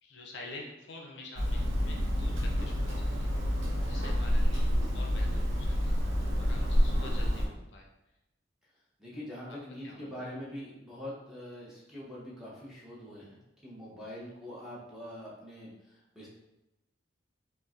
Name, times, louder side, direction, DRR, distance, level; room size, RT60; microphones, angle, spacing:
voice 1, 0.0-3.3 3.8-5.9 6.4-7.9 9.5-9.6 9.8-10.3, left 2 dB, 60° left, -1 dB, 0.5 m, -48 dB
Hammer, 1.4-7.5, equal, 85° right, 0.6 m, -28 dB
voice 2, 9.0-13.4 13.6-15.7 16.1-16.3, left 1 dB, ahead, -7 dB, 0.7 m, -43 dB
3.9 x 2.1 x 2.3 m, 0.94 s
head